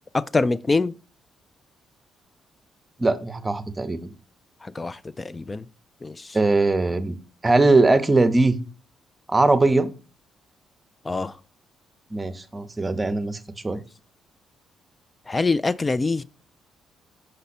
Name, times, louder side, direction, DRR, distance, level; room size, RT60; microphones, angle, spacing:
voice 1, 0.1-0.9 4.8-5.6 6.0-6.1 11.1-11.3 15.3-16.2, left 3 dB, 25° left, 0.3 m, -24 dB
voice 2, 3.0-4.1 6.3-7.2 7.4-8.6 9.3-9.9 12.1-13.4 13.6-13.8, right 2 dB, 20° right, 0.8 m, -20 dB
5.4 x 5.2 x 4.2 m
cardioid pair, 90°, 0 cm